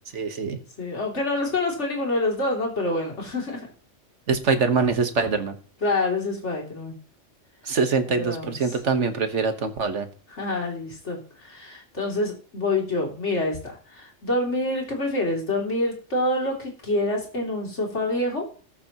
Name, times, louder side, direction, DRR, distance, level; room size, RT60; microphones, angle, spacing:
voice 1, 0.1-0.6 4.3-5.5 7.6-10.1, right 5 dB, 70° right, 8 dB, 1.6 m, -24 dB
voice 2, 0.8-3.7 5.8-7.0 8.1-8.8 10.3-18.4, left 2 dB, 65° left, 0 dB, 3.2 m, -27 dB
19.5 x 6.9 x 3.0 m, 0.42 s
omnidirectional pair, 1.3 m